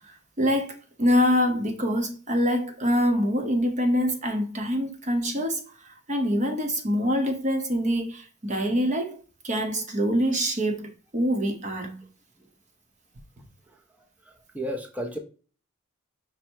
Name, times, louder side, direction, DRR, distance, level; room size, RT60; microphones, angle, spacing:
voice 1, 0.1-12.0, equal, 35° right, 0.8 m, -25 dB
voice 2, 14.3-15.2, equal, 5° right, 0.5 m, -33 dB
5.5 x 2.1 x 4.4 m
head